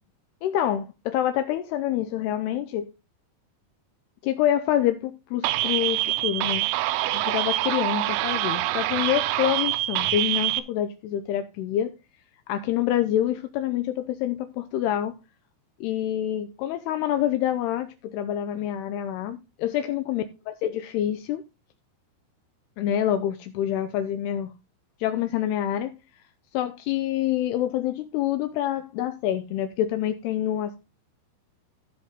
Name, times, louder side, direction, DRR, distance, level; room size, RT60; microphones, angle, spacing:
voice 1, 0.4-2.9 4.2-6.7 7.1-11.9 12.5-15.2 15.8-21.4 22.8-24.5 25.0-25.9 26.5-30.8, left 11 dB, 85° left, 2.4 m, -27 dB
sound 1, 5.4-10.6, right 15 dB, 90° right, 3.2 m, -25 dB
15.0 x 5.4 x 3.7 m
omnidirectional pair, 5.4 m